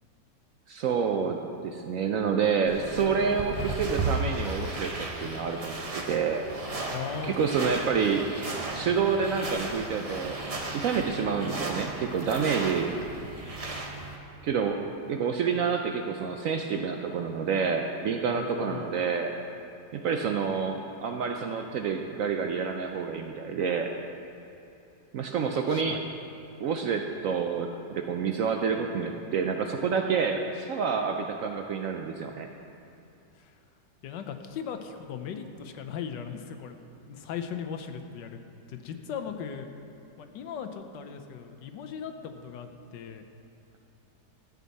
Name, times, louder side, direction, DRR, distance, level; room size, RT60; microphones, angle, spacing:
voice 1, 0.7-6.4 7.2-8.3 8.7-10.4 10.7-13.0 14.4-14.8 15.1-19.3 19.9-23.9 25.1-26.0 26.6-32.5, right 6 dB, 70° right, 4 dB, 0.8 m, -28 dB
sound 1, 2.7-14.2, right 2 dB, 35° right, 0.6 m, -35 dB
voice 2, 6.9-7.3 7.9-8.1 18.2-19.0 25.7-26.1 33.4-33.5 34.0-36.8 37.1-38.4 38.7-39.7 40.2-43.2, left 7 dB, 85° left, 7 dB, 1.4 m, -38 dB
13.5 x 8.3 x 4.1 m, 2.8 s
omnidirectional pair, 1.9 m